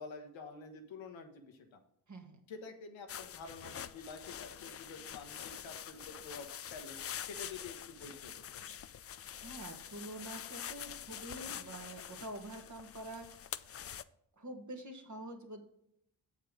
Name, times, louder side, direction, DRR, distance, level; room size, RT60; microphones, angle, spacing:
voice 1, 0.0-1.6 2.5-7.0 7.2-8.7, left 4 dB, 75° left, 4 dB, 1.3 m, -48 dB
voice 2, 2.1-2.4 9.4-13.4 14.4-15.6, right 1 dB, 40° right, 4 dB, 1.9 m, -46 dB
sound 1, 3.1-14.0, left 9 dB, 35° left, 0.4 m, -46 dB
7.3 x 5.5 x 5.0 m, 0.75 s
supercardioid pair, 45°, 46 cm